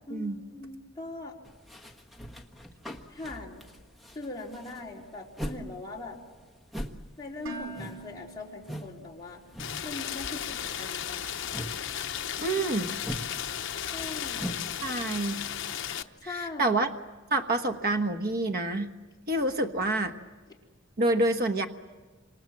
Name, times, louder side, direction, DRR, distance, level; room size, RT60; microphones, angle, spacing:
voice 1, 0.1-1.4 3.1-3.6 4.1-6.2 7.2-9.4 9.8-11.2 13.9-14.5 16.2-16.8, left 2 dB, 20° left, -3 dB, 4.1 m, -41 dB
sound 1, 1.5-5.7 6.0-9.0 9.2-9.9 10.2-14.7, equal, ahead, 1.4 m, -41 dB
Dishes pots and pans, 7.5-9.5, right 2 dB, 75° right, 4.4 m, -44 dB
Rain, 9.6-16.0, left 9 dB, 65° left, 0.9 m, -35 dB
voice 2, 12.4-12.9 14.8-15.4 15.9-16.9 17.3-18.9 19.3-20.1 21.0-21.7, right 2 dB, 50° right, 7 dB, 1.3 m, -27 dB
28.5 x 27.0 x 7.5 m, 1.4 s
head